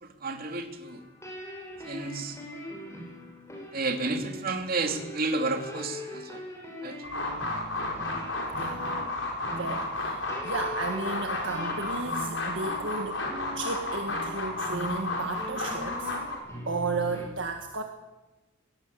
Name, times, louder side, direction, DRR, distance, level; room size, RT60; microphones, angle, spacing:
voice 1, 0.0-1.0 1.8-2.4 3.7-6.4 6.8-7.0, right 3 dB, 45° right, 5 dB, 2.9 m, -31 dB
sound 1, 0.8-17.3, equal, 15° left, 6.0 m, -42 dB
sound 2, 7.0-16.4, left 2 dB, 60° left, 5.0 m, -32 dB
voice 2, 8.5-9.0 9.5-13.3 13.5-16.1 16.7-17.8, right 3 dB, 60° right, 4 dB, 1.7 m, -34 dB
22.0 x 18.5 x 8.5 m, 1.1 s
head